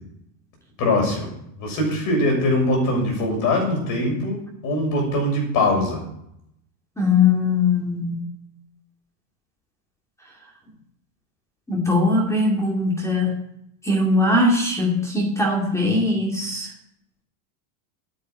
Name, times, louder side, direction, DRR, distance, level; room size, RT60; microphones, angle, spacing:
voice 1, 0.8-1.3 1.6-6.0, left 1 dB, 45° left, 1 dB, 6.8 m, -22 dB
voice 2, 7.0-8.2 11.7-13.4 13.8-16.7, left 3 dB, 5° left, 0 dB, 2.4 m, -20 dB
10.5 x 9.4 x 9.5 m, 0.76 s
cardioid pair, 150°, 43 cm